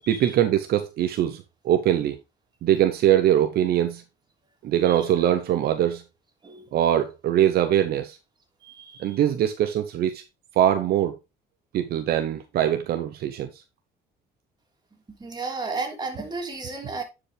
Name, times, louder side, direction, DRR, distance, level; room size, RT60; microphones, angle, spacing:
voice 1, 0.1-2.2 2.6-4.0 4.6-6.0 6.7-8.2 9.0-10.2 10.6-11.1 11.7-13.5, right 11 dB, 65° right, 0.8 m, -22 dB
voice 2, 4.8-5.3 6.4-6.7 8.6-9.2 15.2-17.0, right 3 dB, 25° right, 2.9 m, -34 dB
10.5 x 5.1 x 3.3 m
cardioid pair, 110°, 17 cm